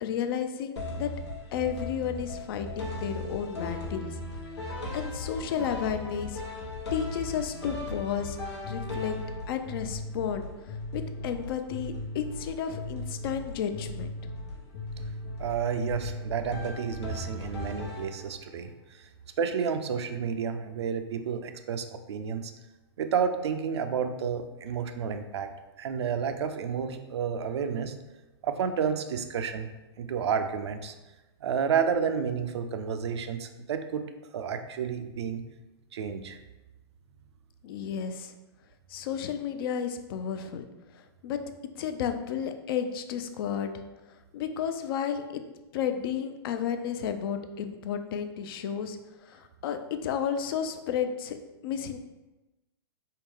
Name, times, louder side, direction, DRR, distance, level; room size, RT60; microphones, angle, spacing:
voice 1, 0.0-1.1 1.5-4.1 4.6-6.4 6.9-8.4 8.7-9.2 9.5-10.5 10.9-14.1 37.6-38.3 38.9-40.7 40.9-41.4 41.8-43.7 44.3-45.4 45.7-49.0 49.3-51.4 51.6-52.0, left 8 dB, 60° left, 8 dB, 0.4 m, -32 dB
sound 1, 0.8-18.6, left 2 dB, 85° left, 0.9 m, -37 dB
voice 2, 15.4-18.7 19.4-22.5 23.0-25.5 25.8-27.9 28.4-29.7 30.0-30.9 31.4-34.1 34.3-35.4 35.9-36.4, right 7 dB, 80° right, 8 dB, 0.4 m, -30 dB
3.6 x 2.1 x 3.5 m, 1.1 s
hypercardioid pair, 120°, 14 cm